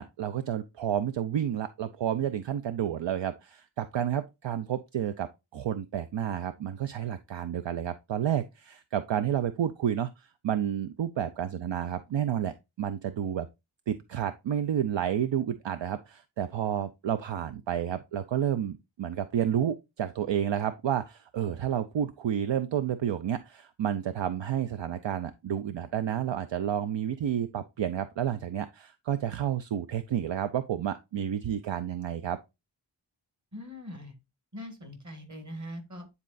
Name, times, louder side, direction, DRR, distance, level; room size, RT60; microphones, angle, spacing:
voice 1, 0.0-13.5 13.9-32.4, right 9 dB, 70° right, 0.5 m, -30 dB
voice 2, 33.5-34.2 34.5-36.1, equal, 35° right, 1.8 m, -42 dB
9.7 x 4.1 x 2.5 m
wide cardioid pair, 80°, 47 cm